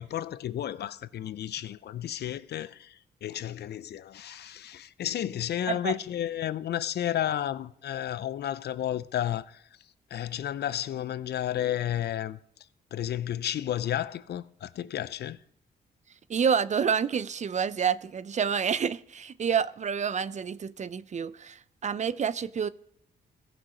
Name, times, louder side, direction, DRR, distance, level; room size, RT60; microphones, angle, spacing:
voice 1, 0.0-9.7 10.1-12.4 12.9-15.4, left 11 dB, 70° left, 0.5 m, -32 dB
voice 2, 16.3-22.7, right 7 dB, 45° right, 0.5 m, -28 dB
16.0 x 6.0 x 5.0 m
cardioid pair, 70°, 17 cm